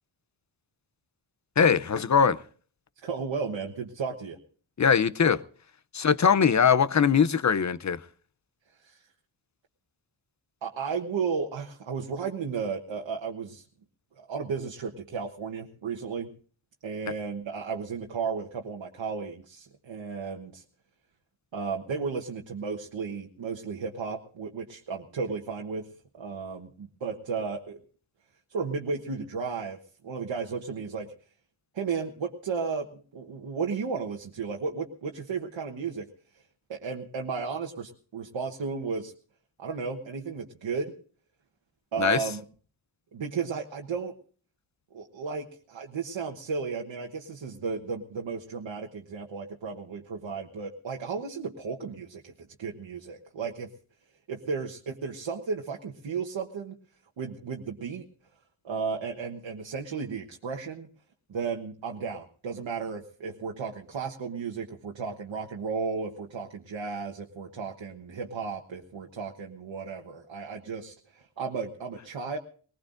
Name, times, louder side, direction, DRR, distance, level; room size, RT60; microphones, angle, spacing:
voice 1, 1.6-2.4 4.8-5.4 5.9-8.0 42.0-42.2, left 6 dB, 35° left, 0.6 m, -21 dB
voice 2, 3.0-4.4 8.8-9.0 10.6-13.6 14.2-16.3 16.8-20.6 21.5-25.9 26.1-27.8 28.5-31.1 31.7-36.1 36.3-36.4 36.7-39.1 39.6-40.9 41.9-42.4 43.1-44.1 44.9-53.7 54.3-56.8 57.2-58.1 58.6-60.9 61.3-72.4, right 5 dB, 70° right, 1.3 m, -34 dB
20.0 x 19.5 x 2.6 m
wide cardioid pair, 130°, 47 cm